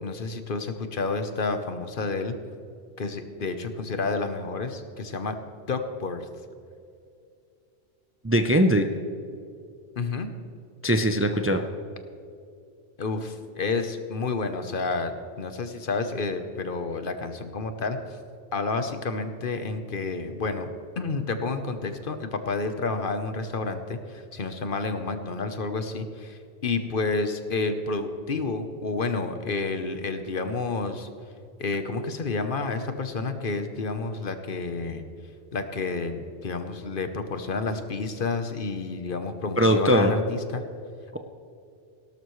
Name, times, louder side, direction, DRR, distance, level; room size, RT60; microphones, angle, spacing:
voice 1, 0.0-2.3 3.0-5.3 5.7-6.3 10.0-10.3 13.0-18.0 18.5-31.1 31.6-35.0 35.5-40.6, left 3 dB, 55° left, 8 dB, 1.1 m, -30 dB
voice 2, 8.2-8.9 10.8-11.6 39.6-40.1 41.1-41.2, equal, 15° right, 6 dB, 0.5 m, -21 dB
17.5 x 12.0 x 3.2 m, 2.5 s
omnidirectional pair, 1.1 m